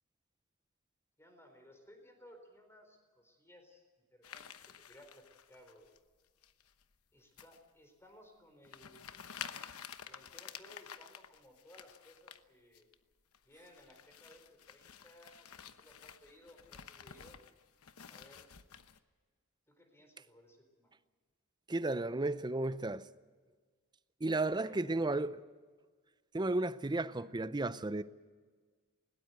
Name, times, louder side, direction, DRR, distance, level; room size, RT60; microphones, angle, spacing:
voice 1, 1.2-3.8 4.1-4.4 4.9-5.9 7.1-9.1 10.1-12.8 13.5-17.4 18.1-18.5 19.7-20.9 24.6-25.2, left 1 dB, 10° left, 4.2 m, -60 dB
sound 1, 4.2-6.0 6.4-6.8 7.4-7.6 8.1-8.2 8.6-12.4 12.7-12.9 13.3-19.0, left 8 dB, 80° left, 1.0 m, -51 dB
voice 2, 21.7-23.1 24.2-25.4 26.3-28.0, right 2 dB, 20° right, 0.6 m, -33 dB
21.0 x 18.5 x 8.1 m
head